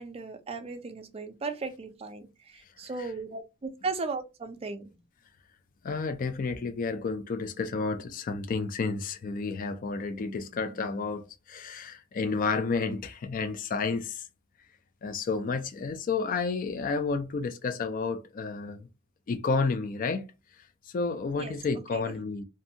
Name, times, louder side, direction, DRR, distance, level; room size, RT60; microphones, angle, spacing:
voice 1, 0.0-4.9 21.4-21.6 21.9-22.1, right 4 dB, 30° right, 0.4 m, -36 dB
voice 2, 5.8-14.3 15.0-18.9 19.3-20.2 20.9-22.4, left 4 dB, 40° left, 0.3 m, -31 dB
2.6 x 2.2 x 2.7 m
head